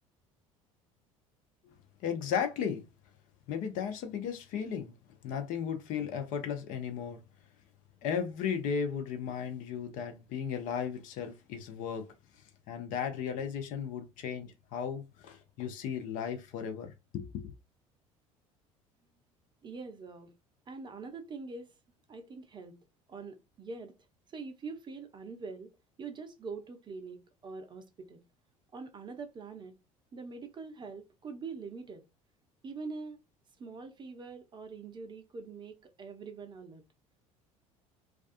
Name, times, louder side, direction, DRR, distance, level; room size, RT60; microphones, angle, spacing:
voice 1, 2.0-2.9 3.5-4.9 5.2-7.2 8.0-12.1 12.7-17.5, left 7 dB, 50° left, 0.5 m, -35 dB
voice 2, 19.6-20.3 20.7-21.7 22.1-22.8 23.1-24.0 24.3-25.7 26.0-28.2 28.7-29.7 30.1-32.0 32.6-33.2 33.6-36.8, right 4 dB, 25° right, 0.5 m, -44 dB
2.4 x 2.3 x 2.4 m
figure-of-eight pair, 65°, 18 cm